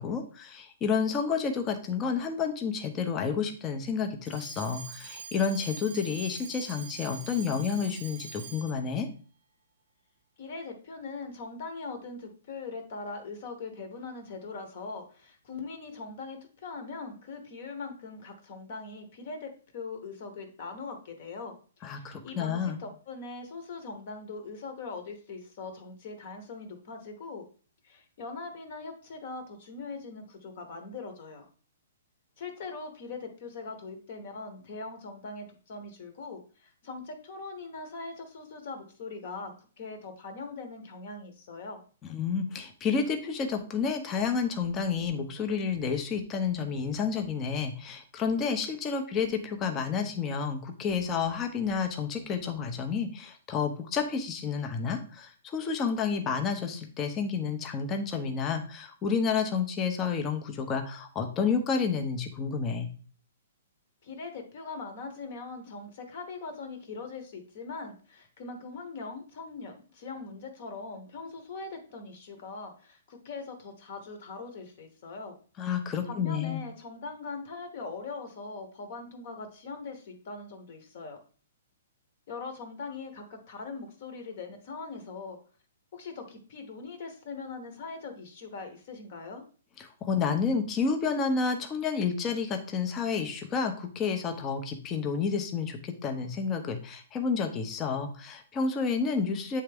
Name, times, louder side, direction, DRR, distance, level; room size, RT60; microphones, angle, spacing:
voice 1, 0.0-9.1 21.8-22.8 42.0-62.9 75.6-76.6 89.8-99.6, left 5 dB, 15° left, 5 dB, 0.6 m, -30 dB
Alarm, 4.2-8.9, right 7 dB, 40° right, 0.5 m, -44 dB
voice 2, 10.4-27.4 27.8-31.4 32.4-41.8 64.0-75.4 76.0-81.2 82.3-85.4 85.9-89.4, left 4 dB, 40° left, 6 dB, 1.0 m, -41 dB
8.4 x 3.4 x 3.4 m, 0.40 s
hypercardioid pair, 175°, 0 cm